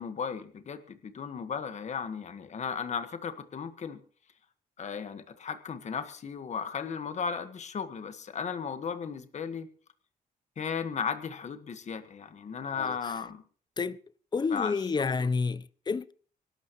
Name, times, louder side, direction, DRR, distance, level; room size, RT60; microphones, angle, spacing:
voice 1, 0.0-4.0 4.8-9.7 10.6-13.4 14.5-15.3, left 6 dB, 50° left, 1.5 m, -35 dB
voice 2, 14.3-16.1, left 4 dB, 30° left, 0.7 m, -29 dB
25.0 x 12.0 x 3.1 m
cardioid pair, 95°, 16 cm